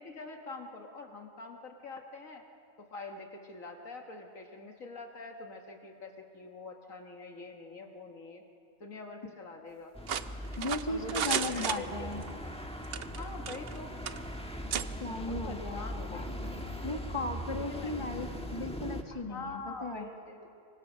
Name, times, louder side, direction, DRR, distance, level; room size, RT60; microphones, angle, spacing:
voice 1, 0.0-2.4 2.8-8.4 8.8-9.9 10.9-12.1 13.2-13.9 15.2-17.0 17.7-18.3 19.1-20.5, left 3 dB, 70° left, 3 dB, 1.8 m, -45 dB
sound 1, 9.9-19.0, equal, 5° left, 1.4 m, -40 dB
sound 2, 10.1-12.3 12.8-13.8 14.1-14.2 14.7-14.9, right 8 dB, 55° right, 0.8 m, -34 dB
voice 2, 10.6-12.2 15.0-16.5 16.8-20.1, left 2 dB, 20° left, 4 dB, 1.4 m, -37 dB
25.0 x 24.0 x 6.4 m, 2.6 s
omnidirectional pair, 1.5 m